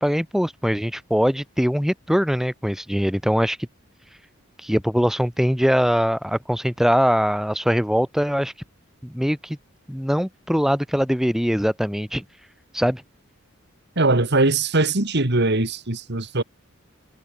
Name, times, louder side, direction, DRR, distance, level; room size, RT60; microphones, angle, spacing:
voice 1, 0.0-3.6 4.6-8.5 9.0-9.6 9.9-12.2 12.7-13.0, equal, ahead, 4.0 m, -22 dB
voice 2, 14.0-16.4, right 2 dB, 55° right, 2.5 m, -21 dB
head